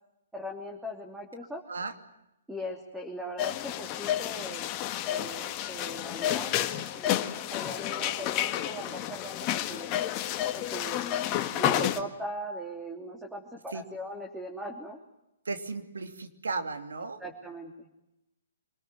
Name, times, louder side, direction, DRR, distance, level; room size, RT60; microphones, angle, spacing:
voice 1, 0.3-1.6 2.5-4.7 5.1-9.9 10.5-15.0 17.2-17.9, equal, 5° right, 1 dB, 3.0 m, -40 dB
sound 1, 3.4-12.0, left 12 dB, 30° left, 1.6 m, -30 dB
voice 2, 15.5-17.2, right 3 dB, 75° right, 6 dB, 2.8 m, -35 dB
26.0 x 20.5 x 9.6 m, 0.89 s
hypercardioid pair, 130°, 0 cm